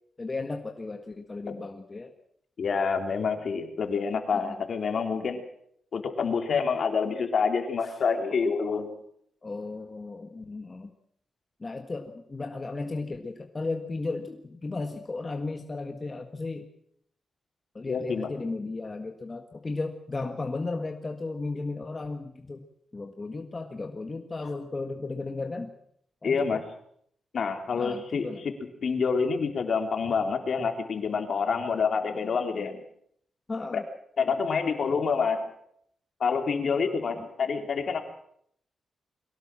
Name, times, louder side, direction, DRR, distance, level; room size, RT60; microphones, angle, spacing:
voice 1, 0.2-2.1 4.3-4.6 7.8-8.0 9.4-10.9 11.6-16.7 17.7-22.6 22.9-25.7 26.2-26.6 27.7-28.4 33.5-33.8 37.1-37.2, left 3 dB, 25° left, 5 dB, 1.6 m, -35 dB
voice 2, 2.6-5.4 5.9-9.0 17.9-18.3 26.2-26.6 27.3-28.5 28.8-32.8 33.7-33.8 34.2-35.5 36.2-38.0, left 5 dB, 55° left, 5 dB, 3.3 m, -27 dB
23.0 x 17.5 x 7.5 m, 0.68 s
cardioid pair, 115°, 0 cm